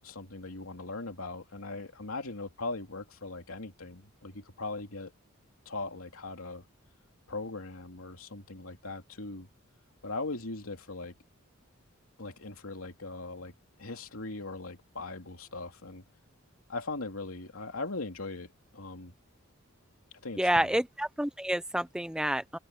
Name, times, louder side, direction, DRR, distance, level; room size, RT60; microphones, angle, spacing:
voice 1, 0.0-5.1 5.6-6.7 7.3-9.5 10.0-11.2 12.2-13.5 13.8-16.0 16.7-19.1 20.2-20.8, left 3 dB, 85° left, 2.9 m, -39 dB
voice 2, 20.4-22.6, right 1 dB, 5° right, 0.6 m, -29 dB
head